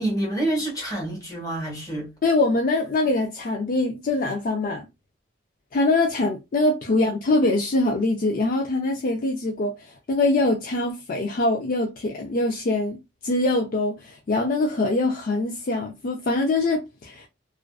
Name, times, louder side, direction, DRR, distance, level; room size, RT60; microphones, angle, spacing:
voice 1, 0.0-2.1, right 1 dB, 20° left, 1.0 m, -27 dB
voice 2, 2.2-4.9 5.7-13.0 13.2-17.3, left 2 dB, 45° left, 0.4 m, -23 dB
2.5 x 2.2 x 2.3 m
head